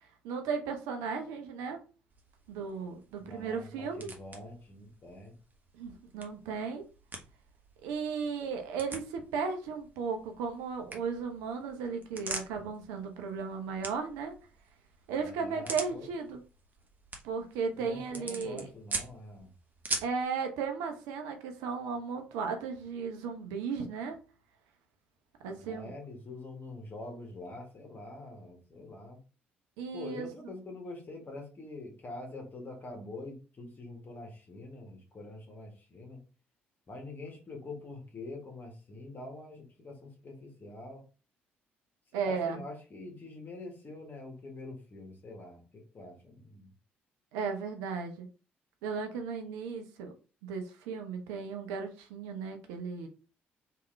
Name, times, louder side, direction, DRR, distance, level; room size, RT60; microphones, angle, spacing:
voice 1, 0.2-1.8 2.5-4.1 5.8-6.8 7.8-14.3 15.1-16.4 17.2-18.7 20.0-24.2 25.4-25.9 29.8-30.3 42.1-42.6 47.3-48.3 48.8-50.1 50.4-53.1, right 5 dB, 70° right, 0.7 m, -35 dB
sound 1, 2.1-20.3, right 3 dB, 30° right, 1.0 m, -44 dB
voice 2, 3.2-5.3 15.2-16.1 17.8-19.5 25.5-29.2 29.9-36.2 36.9-41.0 42.2-46.7, left 2 dB, 35° left, 1.6 m, -45 dB
3.5 x 2.8 x 3.2 m
figure-of-eight pair, 45°, 6 cm